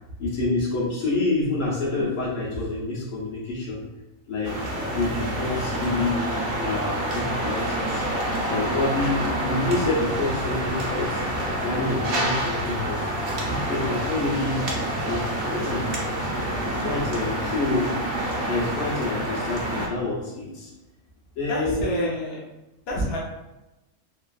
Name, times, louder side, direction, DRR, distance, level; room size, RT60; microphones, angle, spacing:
voice 1, 0.2-3.8 4.3-4.5 4.9-6.2 6.6-8.1 8.5-11.2 11.6-13.1 13.6-14.6 15.1-16.0 16.6-17.9 18.5-20.7 21.4-22.1, left 2 dB, 80° left, -5 dB, 1.3 m, -27 dB
sound 1, 4.4-19.9, right 1 dB, 55° right, 0.8 m, -27 dB
voice 2, 21.5-22.4 22.9-23.2, equal, 60° left, -3 dB, 0.8 m, -28 dB
3.0 x 2.5 x 2.3 m, 1.0 s
omnidirectional pair, 1.3 m